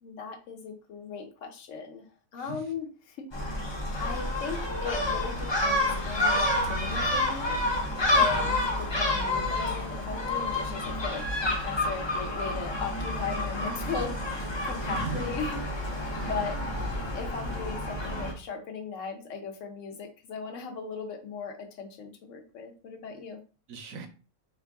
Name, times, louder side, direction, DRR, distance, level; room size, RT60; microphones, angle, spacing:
voice 1, 0.0-2.0 2.3-3.7 4.0-7.6 8.1-16.6 17.1-23.4, left 5 dB, 65° left, 3 dB, 1.1 m, -38 dB
Gull seagull, 3.3-18.3, left 1 dB, 45° left, 0.3 m, -29 dB
voice 2, 14.7-15.3 16.2-17.1 23.1-23.2 23.7-24.1, right 4 dB, 75° right, 6 dB, 1.0 m, -39 dB
3.0 x 2.5 x 3.5 m, 0.34 s
omnidirectional pair, 1.5 m